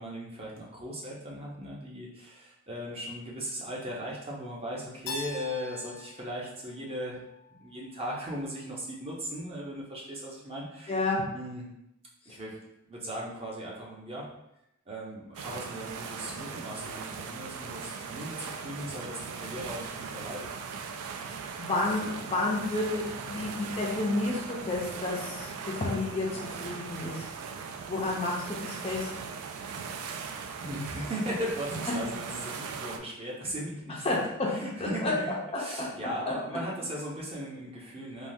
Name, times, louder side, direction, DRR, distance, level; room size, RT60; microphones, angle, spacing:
voice 1, 0.0-7.2 7.6-11.0 11.3-11.7 12.3-12.5 12.8-14.3 14.9-20.5 30.6-34.2 34.5-38.3, equal, 25° right, -4 dB, 0.5 m, -38 dB
Keyboard (musical), 5.1-7.9, left 2 dB, 65° left, 0.6 m, -42 dB
voice 2, 10.9-11.2 21.3-27.3 27.9-29.1 31.9-32.0 34.0-34.5 34.8-35.1 36.3-36.4, left 2 dB, 25° left, -2 dB, 0.4 m, -31 dB
sound 1, 15.3-33.0, right 5 dB, 80° right, 0.3 m, -39 dB
3.3 x 2.2 x 2.6 m, 0.84 s
head